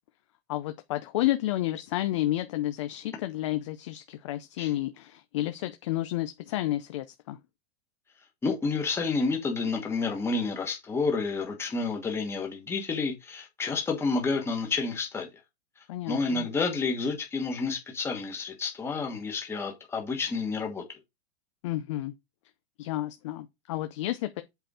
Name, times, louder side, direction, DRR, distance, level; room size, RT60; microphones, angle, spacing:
voice 1, 0.5-7.4 15.9-16.5 21.6-22.1 22.8-24.4, left 15 dB, 30° left, 0.4 m, -31 dB
voice 2, 8.4-15.3 16.1-20.8, left 4 dB, 10° left, 1.3 m, -30 dB
7.9 x 4.3 x 4.8 m
supercardioid pair, 175°, 32 cm